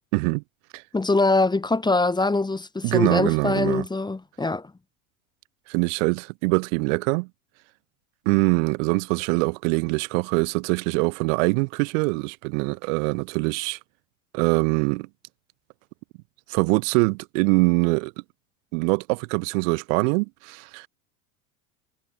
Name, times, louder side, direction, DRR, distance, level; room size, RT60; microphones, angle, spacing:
voice 1, 0.1-0.4 0.7-0.8 2.8-3.8 5.7-7.3 8.3-13.8 14.3-15.1 16.5-18.1 18.7-20.9, right 30 dB, 55° right, 1.9 m, -23 dB
voice 2, 0.9-4.7, left 3 dB, 10° left, 1.8 m, -23 dB
hypercardioid pair, 90°, 45 cm